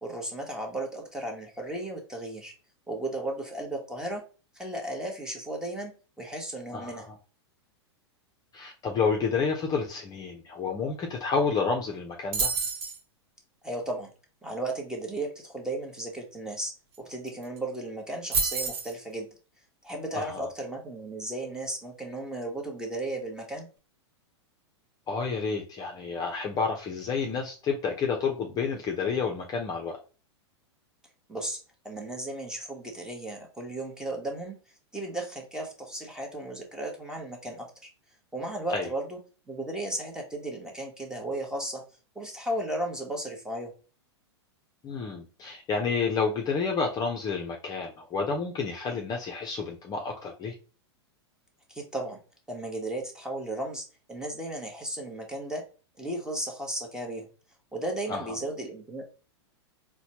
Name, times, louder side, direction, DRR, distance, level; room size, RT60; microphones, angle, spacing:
voice 1, 0.0-2.5 2.9-4.2 4.5-7.1 13.6-14.1 14.4-16.7 17.0-19.3 19.8-23.7 31.3-31.6 31.8-34.5 34.9-37.9 38.3-39.2 39.5-41.8 42.1-43.7 51.7-52.2 52.5-55.6 56.0-57.3 57.7-59.0, right 1 dB, 5° right, 1 dB, 1.1 m, -35 dB
voice 2, 6.7-7.1 8.5-12.5 20.1-20.4 25.1-30.0 38.7-38.9 44.8-50.5 58.1-58.3, left 5 dB, 25° left, 1 dB, 0.6 m, -30 dB
sound 1, 12.3-13.0 16.9-17.0 17.3-17.6 18.3-18.9, right 4 dB, 60° right, 1.1 m, -28 dB
4.1 x 2.2 x 2.9 m, 0.35 s
hypercardioid pair, 105°, 14 cm